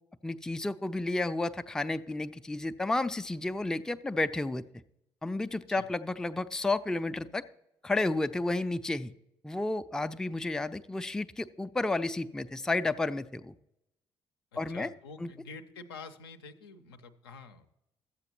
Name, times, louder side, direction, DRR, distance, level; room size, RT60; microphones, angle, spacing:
voice 1, 0.2-4.6 5.2-7.4 7.8-9.1 9.4-13.6 14.6-14.9 15.2-15.3, left 2 dB, 5° left, 10 dB, 0.3 m, -31 dB
voice 2, 14.5-17.7, left 4 dB, 75° left, 8 dB, 0.5 m, -48 dB
13.0 x 8.0 x 2.9 m, 0.85 s
figure-of-eight pair, 45°, 13 cm